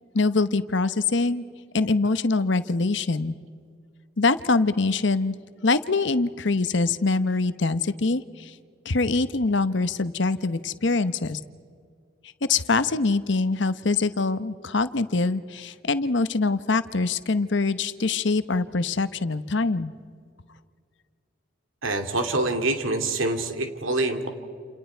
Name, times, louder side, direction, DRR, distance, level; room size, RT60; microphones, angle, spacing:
voice 1, 0.1-1.4 1.7-3.3 4.2-5.4 5.6-8.5 8.8-11.4 12.5-19.9, left 3 dB, 65° left, 13 dB, 0.9 m, -24 dB
voice 2, 21.8-24.3, right 2 dB, 90° right, 6 dB, 2.6 m, -25 dB
29.0 x 28.5 x 4.6 m, 2.2 s
head